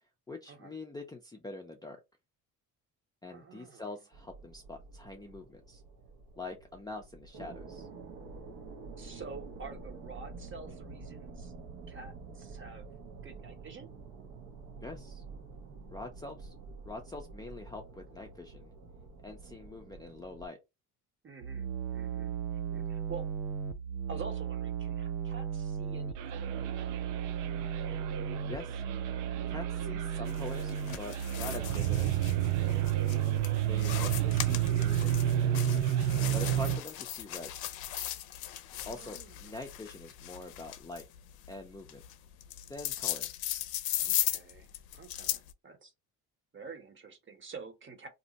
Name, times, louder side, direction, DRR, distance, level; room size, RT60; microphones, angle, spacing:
voice 1, 0.3-2.0 3.2-5.8 6.4-7.9 14.8-15.2 15.9-16.5 16.9-18.7 19.2-20.6 28.5-28.8 29.5-32.8 33.7-35.7 36.3-37.8 38.9-41.1 41.5-42.0 42.7-43.3, left 2 dB, 10° left, 0.5 m, -44 dB
voice 2, 3.3-3.9 8.9-11.5 11.9-12.9 13.2-13.9 21.2-23.3 24.1-27.0 33.4-33.7 36.7-36.8 38.7-39.6 44.0-45.9 46.5-48.1, right 4 dB, 30° right, 1.0 m, -48 dB
sound 1, 4.1-20.5, right 4 dB, 60° right, 1.0 m, -48 dB
sound 2, 21.4-36.8, right 10 dB, 85° right, 0.5 m, -31 dB
sound 3, 30.3-45.5, left 13 dB, 65° left, 0.6 m, -38 dB
2.7 x 2.0 x 3.9 m
supercardioid pair, 80°, 39 cm